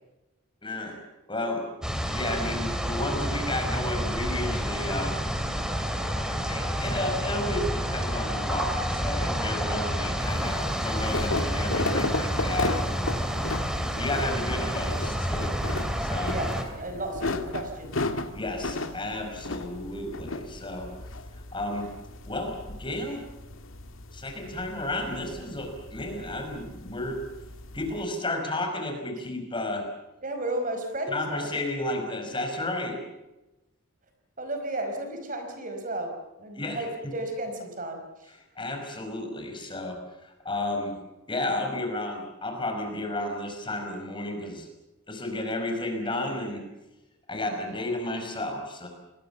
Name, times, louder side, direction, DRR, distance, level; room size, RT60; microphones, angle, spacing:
voice 1, 0.6-1.0 1.3-1.6 2.1-5.2 6.5-13.1 14.0-15.6 16.0-16.4 18.3-20.9 21.5-21.9 22.2-23.2 24.1-27.2 27.7-29.8 31.1-33.0 36.6-37.1 38.6-40.9 41.3-44.7 45.1-46.6 47.3-48.9, left 1 dB, 25° left, 3 dB, 5.5 m, -32 dB
sound 1, 1.8-16.6, equal, 5° right, 2.9 m, -29 dB
sound 2, 10.2-28.0, left 2 dB, 75° left, 2.0 m, -35 dB
voice 2, 16.3-18.0 30.2-31.5 34.4-36.1 36.4-38.3, right 1 dB, 40° right, 5 dB, 4.9 m, -33 dB
28.5 x 21.0 x 7.1 m, 0.99 s
head